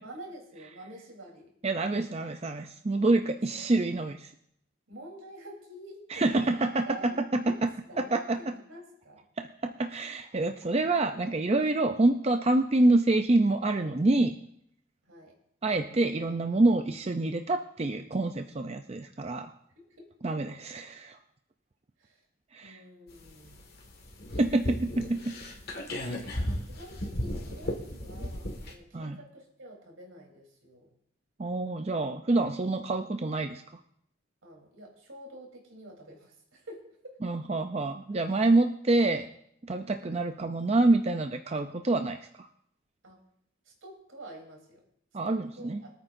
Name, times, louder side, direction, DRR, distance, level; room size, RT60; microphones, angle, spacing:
voice 1, 0.0-1.5 3.5-3.7 4.9-9.3 15.0-15.4 19.2-19.4 19.8-20.1 22.0-22.2 22.6-23.7 26.5-30.9 34.4-37.2 39.9-40.3 43.0-43.2 43.6-44.8 45.3-45.9, right 1 dB, 80° right, 0 dB, 3.6 m, -48 dB
voice 2, 1.6-4.3 6.1-6.9 7.3-7.4 8.0-8.4 9.4-14.4 15.6-19.5 20.2-21.2 22.5-22.8 24.4-25.3 26.0-26.2 28.9-29.2 31.4-33.6 37.2-39.3 39.7-42.5 45.1-45.8, right 2 dB, 30° right, 6 dB, 0.5 m, -27 dB
sound 1, 23.1-28.7, equal, 50° left, 1.9 m, -35 dB
24.0 x 9.0 x 2.6 m, 0.71 s
head